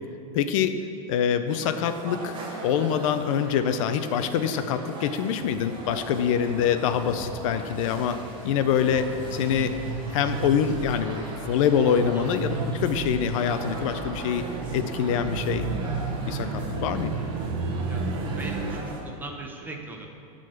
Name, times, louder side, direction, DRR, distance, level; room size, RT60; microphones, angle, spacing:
voice 1, 0.3-0.7 1.1-2.4 2.6-8.2 8.4-9.8 10.1-14.4 14.7-15.7 16.3-17.2, left 8 dB, 60° left, 9 dB, 0.5 m, -25 dB
sound 1, 1.5-19.0, right 2 dB, 25° right, 1.2 m, -40 dB
Motorcycle, 5.4-10.5, left 2 dB, 30° left, 0.8 m, -45 dB
sound 2, 8.7-18.8, right 4 dB, 45° right, 0.9 m, -32 dB
voice 2, 18.4-20.1, right 2 dB, 10° right, 2 dB, 0.7 m, -39 dB
11.0 x 3.8 x 6.7 m, 2.5 s
supercardioid pair, 155°, 19 cm